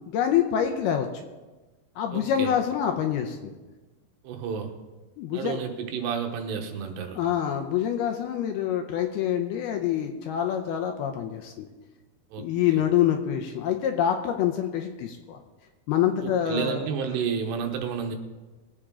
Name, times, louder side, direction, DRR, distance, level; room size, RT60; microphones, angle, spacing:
voice 1, 0.1-1.1 2.0-3.5 5.2-5.6 7.1-11.7 12.4-15.4 15.9-16.9, left 10 dB, 80° left, 4 dB, 2.4 m, -26 dB
voice 2, 2.1-2.5 4.2-4.7 5.3-7.2 12.3-12.5 16.2-18.2, right 7 dB, 75° right, 4 dB, 3.2 m, -31 dB
21.5 x 8.7 x 3.7 m, 1.2 s
omnidirectional pair, 5.1 m